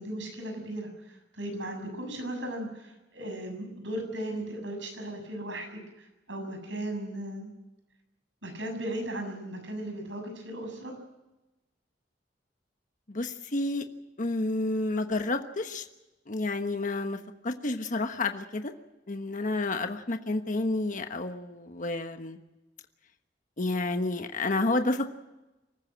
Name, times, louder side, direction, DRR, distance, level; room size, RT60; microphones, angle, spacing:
voice 1, 0.0-7.5 8.4-10.9, right 1 dB, 90° right, 4 dB, 7.2 m, -37 dB
voice 2, 13.1-13.8 14.2-15.9 16.3-18.7 19.1-22.4 23.6-25.1, left 2 dB, 45° left, 7 dB, 1.2 m, -30 dB
25.0 x 14.5 x 8.9 m, 1.0 s
head